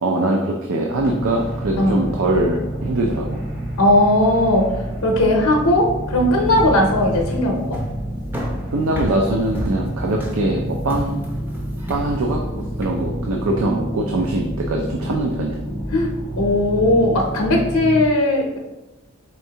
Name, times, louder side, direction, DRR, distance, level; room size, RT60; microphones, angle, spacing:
voice 1, 0.0-3.4 8.7-11.2 11.9-15.6, right 2 dB, 75° right, 1 dB, 0.4 m, -22 dB
sound 1, 0.9-18.1, right 1 dB, 35° right, 1.0 m, -29 dB
voice 2, 3.8-4.7 5.0-7.8 15.9-16.1 16.4-18.6, left 1 dB, 85° left, 1 dB, 0.6 m, -17 dB
sound 2, 6.4-13.0, equal, 10° right, 0.5 m, -31 dB
4.4 x 3.5 x 2.8 m, 1.0 s
head